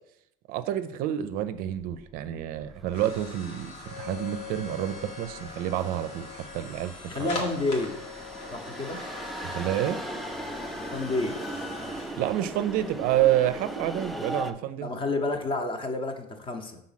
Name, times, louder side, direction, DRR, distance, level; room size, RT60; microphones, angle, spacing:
voice 1, 0.5-6.3 6.5-6.9 7.2-7.3 9.4-10.0 12.1-14.9, right 12 dB, 60° right, 12 dB, 0.5 m, -28 dB
sound 1, 1.4-14.4, left 4 dB, 85° left, 2.0 m, -42 dB
sound 2, 2.9-14.5, right 1 dB, ahead, 0.3 m, -39 dB
voice 2, 7.1-8.0 8.5-9.0 10.9-11.3 14.8-16.8, left 2 dB, 30° left, 5 dB, 0.8 m, -29 dB
6.1 x 3.9 x 5.7 m, 0.75 s
cardioid pair, 155°, 17 cm